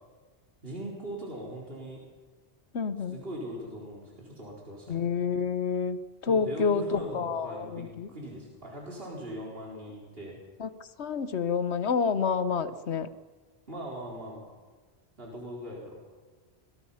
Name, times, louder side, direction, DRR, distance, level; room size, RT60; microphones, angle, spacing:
voice 1, 0.6-2.0 3.1-5.1 6.3-10.4 13.7-14.4 15.2-16.0, right 1 dB, 60° right, -3 dB, 4.7 m, -40 dB
voice 2, 2.7-3.2 4.9-8.1 10.6-10.7 11.0-13.1, left 6 dB, 85° left, 13 dB, 1.3 m, -28 dB
25.5 x 22.5 x 5.7 m, 1.4 s
omnidirectional pair, 1.1 m